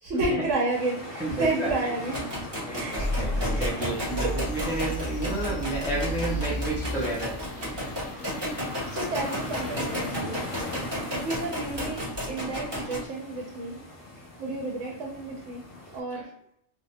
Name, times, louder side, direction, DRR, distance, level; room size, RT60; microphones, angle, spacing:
voice 1, 0.0-2.3 2.7-3.2 3.5-3.9 4.2-4.3 4.6-4.7 8.9-10.4 11.1-13.8 14.4-15.6 15.9-16.2, right 2 dB, 70° right, -3 dB, 0.9 m, -31 dB
sound 1, 0.7-16.0, left 2 dB, 90° left, 1.1 m, -40 dB
voice 2, 1.2-2.0 2.7-7.3 16.1-16.2, right 2 dB, 5° right, -4 dB, 0.4 m, -31 dB
sound 2, 2.1-13.0, equal, 20° right, 0.9 m, -34 dB
sound 3, 2.9-12.9, right 1 dB, 60° left, 0.4 m, -35 dB
2.7 x 2.0 x 2.7 m, 0.73 s
omnidirectional pair, 1.3 m